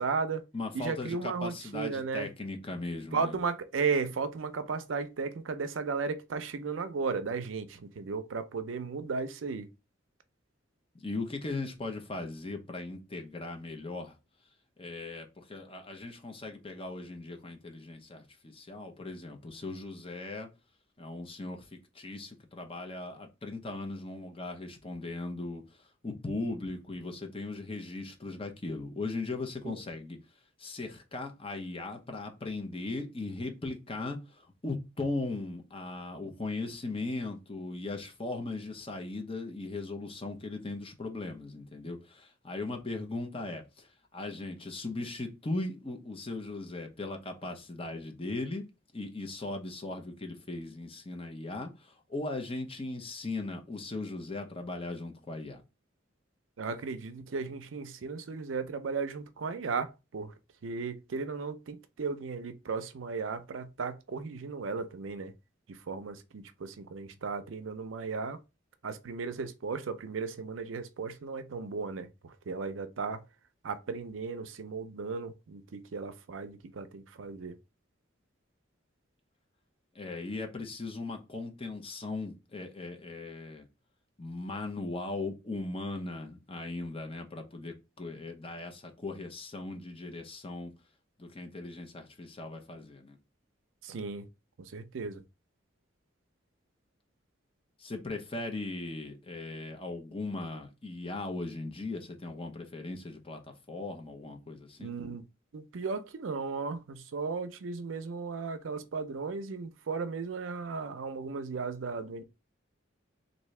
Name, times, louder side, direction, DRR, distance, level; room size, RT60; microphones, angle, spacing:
voice 1, 0.0-0.4 0.7-2.3 3.1-9.7 29.6-29.8 56.6-60.3 60.6-65.3 65.7-68.4 68.8-73.2 73.6-77.6 93.8-94.3 94.6-95.2 104.8-105.2 105.5-112.2, right 4 dB, 80° right, 0.5 m, -35 dB
voice 2, 0.5-3.4 10.9-14.1 14.8-20.5 21.0-25.6 26.0-30.2 30.6-48.6 48.9-55.6 79.9-83.7 84.2-90.7 91.2-93.2 97.8-104.9, left 2 dB, 30° left, 0.8 m, -38 dB
3.5 x 2.6 x 3.2 m
head